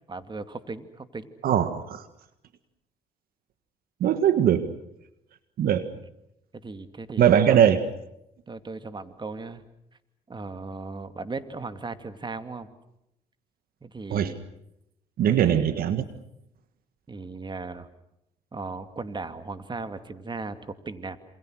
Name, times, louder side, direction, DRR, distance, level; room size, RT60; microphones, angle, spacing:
voice 1, 0.1-1.3 6.6-7.6 8.5-9.6 10.3-12.7 13.8-14.4 15.3-15.7 17.1-17.9 18.5-21.2, right 3 dB, 30° right, 9 dB, 2.5 m, -37 dB
voice 2, 1.4-2.0 4.0-4.7 5.6-5.9 7.2-7.9 14.1-14.3 15.2-16.0, right 9 dB, 65° right, 11 dB, 1.7 m, -21 dB
27.5 x 27.0 x 6.4 m, 0.82 s
supercardioid pair, 65°, 16 cm